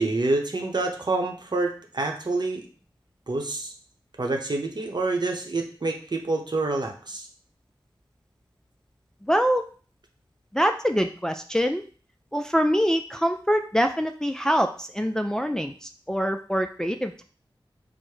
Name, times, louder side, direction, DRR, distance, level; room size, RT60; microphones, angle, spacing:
voice 1, 0.0-2.7 3.3-3.7 4.2-7.3, right 2 dB, 50° right, 2 dB, 0.8 m, -27 dB
voice 2, 9.2-9.6 10.5-11.8 12.3-17.2, equal, 5° left, 5 dB, 0.3 m, -24 dB
4.5 x 2.1 x 4.7 m, 0.41 s
wide cardioid pair, 50°, 9 cm